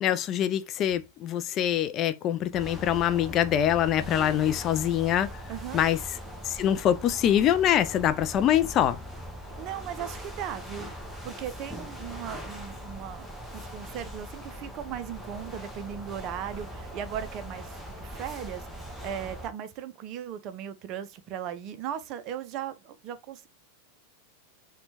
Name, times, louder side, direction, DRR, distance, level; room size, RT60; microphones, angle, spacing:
voice 1, 0.0-5.4 5.7-6.0 6.4-9.0, left 10 dB, 35° left, 0.3 m, -24 dB
sound 1, 2.5-19.5, equal, 5° right, 0.8 m, -41 dB
voice 2, 5.5-5.8 9.6-10.9 11.2-13.3 13.5-23.5, right 9 dB, 40° right, 0.4 m, -37 dB
4.2 x 2.2 x 2.8 m
figure-of-eight pair, 90°, 0 cm